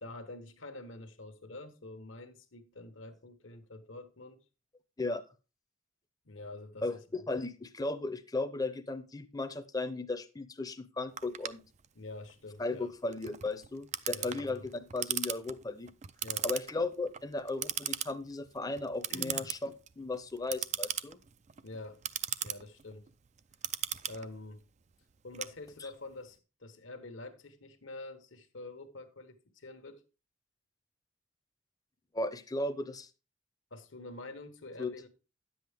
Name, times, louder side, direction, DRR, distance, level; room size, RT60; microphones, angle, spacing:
voice 1, 0.0-4.4 6.2-6.9 11.9-12.9 14.1-14.7 16.2-16.5 19.1-19.5 21.6-22.0 22.4-23.1 24.1-24.6 25.2-30.0 33.7-35.1, left 2 dB, 70° left, 1.2 m, -46 dB
voice 2, 6.8-11.6 12.6-15.9 16.4-21.2 32.1-33.1 34.8-34.9, left 2 dB, 20° left, 0.7 m, -36 dB
Clock, 11.2-26.1, right 11 dB, 35° right, 0.4 m, -39 dB
10.0 x 7.8 x 3.5 m
head